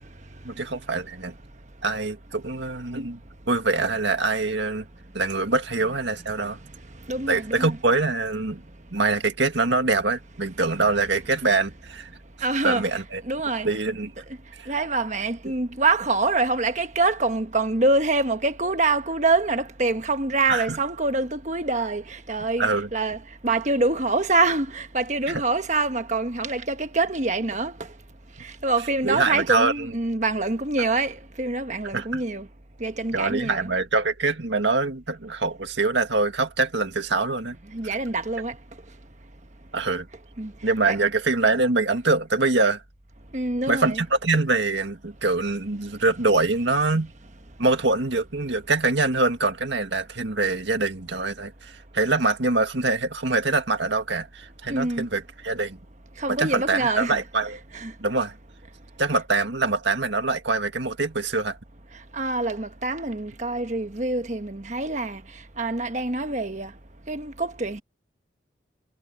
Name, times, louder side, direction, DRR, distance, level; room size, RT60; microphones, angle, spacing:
voice 1, 0.4-1.3 1.8-3.2 3.5-4.9 5.1-6.6 7.3-8.6 8.9-12.1 12.6-13.2 13.6-14.1 14.5-14.7 20.5-20.8 22.6-22.9 25.3-25.4 29.0-29.9 31.9-32.2 33.1-37.6 39.7-40.1 40.6-42.8 43.7-47.1 47.6-55.8 56.4-57.6 58.0-58.3 59.0-61.6, right 3 dB, 70° right, 2.0 m, -24 dB
voice 2, 7.1-7.8 12.4-13.0 13.2-13.7 14.7-27.7 28.4-32.5 32.8-33.7 37.7-38.5 40.4-40.5 40.9-41.0 43.3-44.0 54.7-55.0 56.2-57.2 57.7-57.9 62.1-65.2 65.6-66.7 67.1-67.8, right 3 dB, 40° right, 1.3 m, -25 dB
head